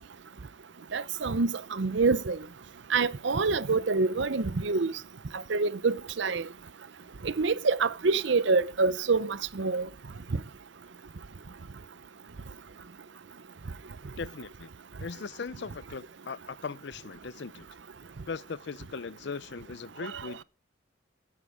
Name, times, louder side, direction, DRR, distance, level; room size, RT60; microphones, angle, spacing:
voice 1, 0.9-2.4 2.9-4.9 5.3-6.5 7.2-9.9 10.3-10.4 20.0-20.3, right 4 dB, 70° right, 0.7 m, -26 dB
voice 2, 14.2-14.7 15.0-17.7 18.3-20.4, left 5 dB, 60° left, 0.5 m, -39 dB
12.0 x 9.5 x 4.9 m
head